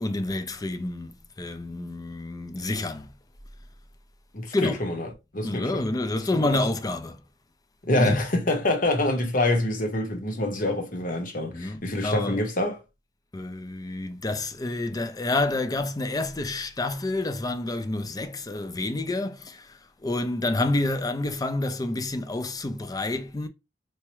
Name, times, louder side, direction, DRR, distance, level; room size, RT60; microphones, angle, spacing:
voice 1, 0.0-3.1 4.5-4.8 5.4-7.2 8.0-8.2 11.5-12.4 13.3-23.5, left 2 dB, 20° left, 0.4 m, -28 dB
voice 2, 4.3-5.1 5.3-5.8 6.3-6.6 7.8-12.8, left 1 dB, 50° left, 1.0 m, -26 dB
4.6 x 2.1 x 3.0 m
head